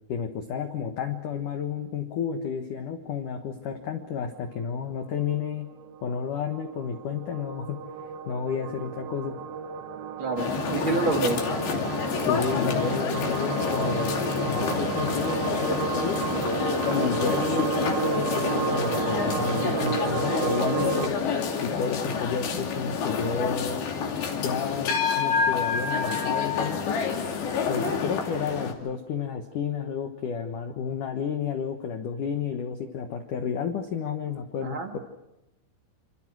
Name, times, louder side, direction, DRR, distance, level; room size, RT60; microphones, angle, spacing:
voice 1, 0.1-5.7 6.0-7.8 8.3-9.4 12.2-16.3 16.9-21.1 21.6-23.9 24.3-27.0 27.7-35.0, left 6 dB, 85° left, 6 dB, 1.8 m, -31 dB
sound 1, 4.4-21.1, right 7 dB, 70° right, 2.3 m, -32 dB
voice 2, 10.2-11.4 27.7-28.0 34.6-35.0, right 3 dB, 45° right, 4 dB, 1.7 m, -28 dB
sound 2, 10.4-28.7, left 6 dB, 60° left, 4.8 m, -28 dB
27.5 x 26.5 x 6.2 m, 0.92 s
omnidirectional pair, 5.9 m